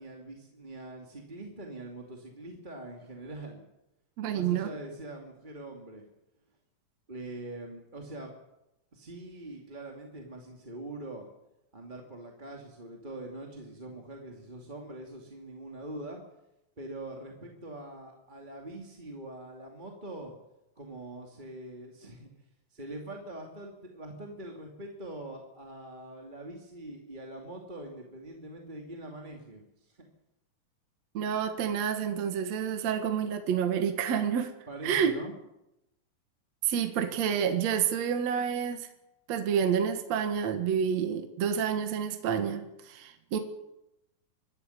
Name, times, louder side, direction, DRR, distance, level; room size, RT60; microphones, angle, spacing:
voice 1, 0.0-3.6 4.3-6.0 7.1-8.4 8.9-11.3 11.7-16.2 16.8-20.3 20.8-22.3 22.7-30.1 34.7-35.3, right 1 dB, 15° right, 1 dB, 2.0 m, -43 dB
voice 2, 4.2-4.7 31.1-34.5 34.8-35.2 36.6-38.9 39.3-43.4, right 8 dB, 55° right, 6 dB, 2.5 m, -29 dB
25.0 x 12.5 x 10.0 m, 0.91 s
omnidirectional pair, 4.0 m